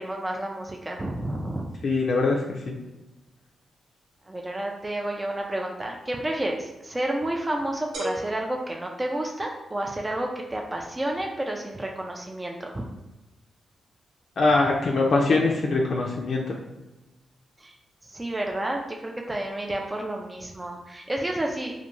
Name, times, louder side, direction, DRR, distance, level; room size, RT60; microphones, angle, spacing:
voice 1, 0.0-1.7 4.3-12.9 17.6-17.7 18.0-21.7, right 1 dB, 20° right, 1 dB, 0.3 m, -30 dB
voice 2, 1.8-2.7 14.4-16.4, left 3 dB, 60° left, -2 dB, 0.3 m, -22 dB
sound 1, 7.9-9.8, right 1 dB, 85° right, 0.6 m, -38 dB
2.4 x 2.2 x 2.9 m, 1.0 s
cardioid pair, 55°, 0 cm